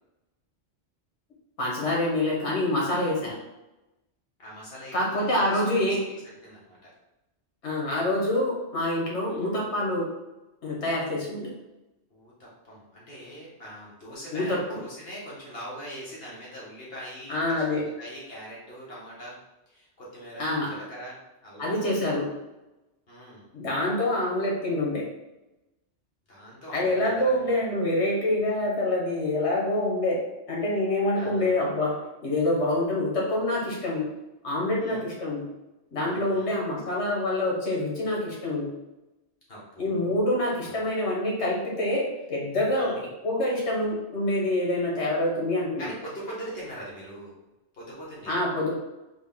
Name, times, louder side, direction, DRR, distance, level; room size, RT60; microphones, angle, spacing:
voice 1, 1.6-3.3 4.9-6.0 7.6-10.1 10.6-11.5 14.3-14.8 17.3-17.8 20.4-20.7 21.6-22.2 23.5-25.0 26.7-30.2 30.5-31.9 32.2-34.1 34.4-35.4 35.9-38.7 39.8-42.9 43.2-45.9 48.3-48.7, left 1 dB, 75° left, -4 dB, 1.5 m, -26 dB
voice 2, 4.4-6.1 6.4-6.9 9.3-9.5 12.1-19.4 19.7-21.1 21.4-21.8 23.1-23.4 26.3-27.7 31.1-31.5 34.8-35.0 36.1-36.5 39.5-40.2 40.6-40.9 42.7-43.0 45.8-47.4 47.7-48.3, equal, 60° left, -5 dB, 1.3 m, -42 dB
4.0 x 2.2 x 3.6 m, 0.97 s
omnidirectional pair, 1.2 m